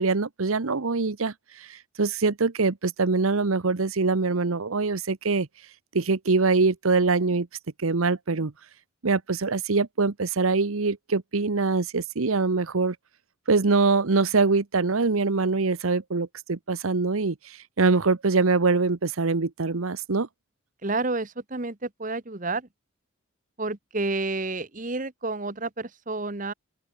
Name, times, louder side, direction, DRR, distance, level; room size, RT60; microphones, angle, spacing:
voice 1, 0.0-5.5 5.9-7.5 7.8-8.5 9.0-13.0 13.5-20.3, right 3 dB, 85° right, 1.0 m, -24 dB
voice 2, 20.8-22.7 23.6-26.5, right 3 dB, 40° right, 1.3 m, -30 dB
open air
head